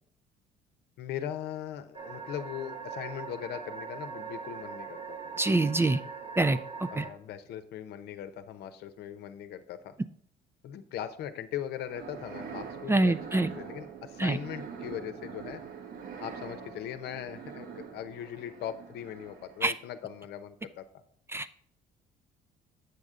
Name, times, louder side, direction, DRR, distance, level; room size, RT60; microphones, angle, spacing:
voice 1, 1.0-5.2 6.9-9.9 10.6-15.6 16.2-20.9, left 10 dB, 75° left, 10 dB, 0.8 m, -39 dB
sound 1, 1.9-7.1, right 6 dB, 35° right, 1.2 m, -41 dB
voice 2, 5.4-6.0 6.4-6.6 7.0-7.1 12.9-13.5 14.2-14.4 19.6-19.7 21.3-21.6, right 2 dB, 15° right, 12 dB, 0.4 m, -25 dB
sound 2, 11.7-19.8, right 6 dB, 60° right, 1.1 m, -44 dB
8.2 x 6.6 x 3.7 m, 0.63 s
cardioid pair, 110°, 17 cm